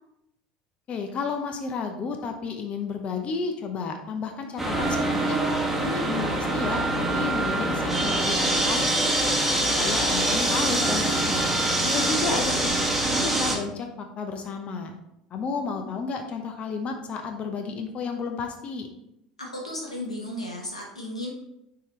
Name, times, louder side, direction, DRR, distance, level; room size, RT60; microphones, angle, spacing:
voice 1, 0.9-5.4 5.8-9.3 9.8-11.5 11.8-12.7 13.1-13.9 14.2-14.9 15.3-18.9, left 4 dB, 40° left, 5 dB, 0.9 m, -32 dB
sound 1, 4.6-13.6, right 1 dB, ahead, 1.7 m, -24 dB
voice 2, 12.0-12.6 19.4-21.3, left 1 dB, 90° left, -1 dB, 1.4 m, -34 dB
9.7 x 3.8 x 3.2 m, 0.84 s
figure-of-eight pair, 70°, 3 cm